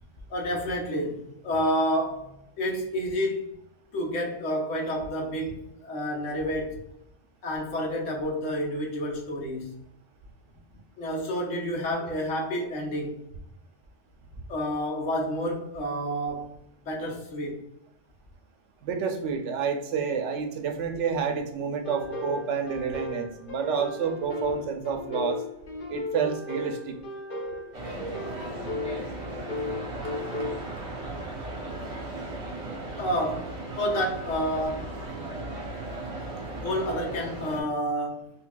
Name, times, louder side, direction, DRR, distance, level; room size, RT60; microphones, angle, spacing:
voice 1, 0.3-3.4 3.9-6.8 7.4-9.8 11.0-13.2 14.5-16.6 16.9-17.6 33.0-34.9 36.6-38.3, equal, 80° left, 1.2 m, -29 dB
voice 2, 18.8-25.4 25.9-27.0, right 6 dB, 75° right, 0.9 m, -29 dB
sound 1, 21.8-30.6, left 2 dB, 50° left, 0.8 m, -35 dB
sound 2, 27.7-37.6, right 2 dB, 35° right, 0.7 m, -37 dB
5.5 x 2.3 x 2.2 m
omnidirectional pair, 1.3 m